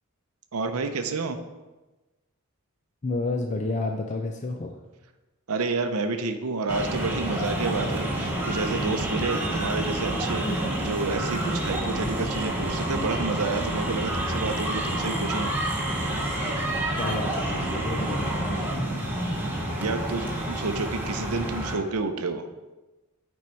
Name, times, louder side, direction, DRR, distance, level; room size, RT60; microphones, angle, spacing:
voice 1, 0.5-1.4 5.5-15.5 19.8-22.5, right 3 dB, 80° right, 7 dB, 0.6 m, -30 dB
voice 2, 3.0-4.8 16.9-18.9, left 2 dB, 35° left, 3 dB, 0.4 m, -31 dB
sound 1, 6.7-21.8, right 1 dB, 10° right, 1.2 m, -28 dB
8.6 x 4.6 x 4.5 m, 1.1 s
head